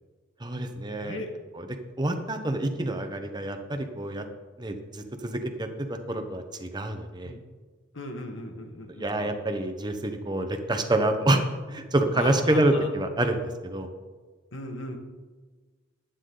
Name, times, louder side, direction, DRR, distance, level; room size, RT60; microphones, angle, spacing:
voice 1, 0.4-1.2 1.5-4.2 4.6-7.3 8.9-11.4 11.7-13.9, right 1 dB, 20° right, 5 dB, 1.0 m, -27 dB
voice 2, 1.0-1.3 7.2-7.4 7.9-9.3 12.1-12.9 14.5-15.0, left 1 dB, 65° left, 4 dB, 1.7 m, -36 dB
14.5 x 10.0 x 3.9 m, 1.3 s
head